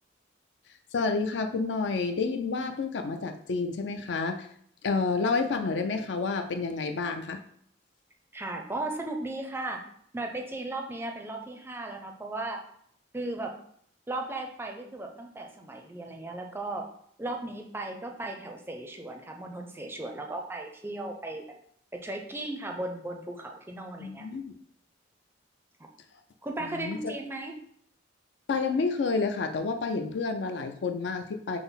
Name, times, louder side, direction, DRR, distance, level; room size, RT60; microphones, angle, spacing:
voice 1, 0.9-4.5 4.8-7.4 24.0-24.5 26.6-27.1 28.5-31.6, left 4 dB, 70° left, 6 dB, 0.4 m, -29 dB
voice 2, 8.3-9.9 10.1-12.6 13.1-13.5 14.1-16.9 17.2-21.4 21.9-24.3 26.4-27.6, right 2 dB, 10° right, 3 dB, 0.4 m, -36 dB
5.7 x 2.0 x 4.0 m, 0.66 s
head